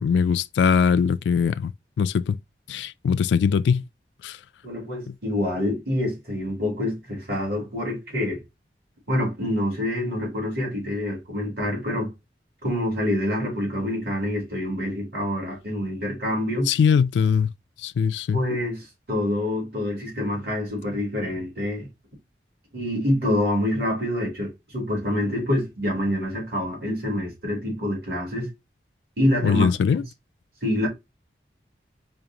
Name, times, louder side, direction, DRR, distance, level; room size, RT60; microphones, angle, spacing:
voice 1, 0.0-1.7 2.0-2.4 2.7-3.8 4.2-4.4 16.7-17.5 17.8-18.4 29.4-30.0, left 6 dB, 85° left, 0.3 m, -21 dB
voice 2, 4.6-8.4 9.1-12.1 12.6-16.7 18.3-18.8 19.1-21.9 22.7-28.5 29.2-29.7 30.6-30.9, left 1 dB, 60° right, 2.6 m, -26 dB
5.0 x 2.5 x 2.8 m
head